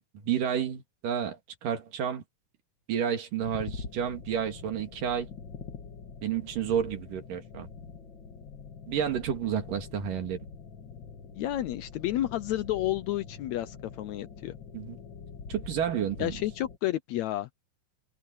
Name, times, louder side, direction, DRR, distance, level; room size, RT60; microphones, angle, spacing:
voice 1, 0.0-2.2 2.9-5.3 6.2-7.7 8.9-10.4 14.7-15.0 15.5-16.3, right 8 dB, 85° right, 3.8 m, -30 dB
sound 1, 3.4-16.8, left 5 dB, 45° left, 1.8 m, -45 dB
voice 2, 11.3-14.5 16.2-17.5, left 14 dB, 75° left, 1.8 m, -31 dB
omnidirectional pair, 3.7 m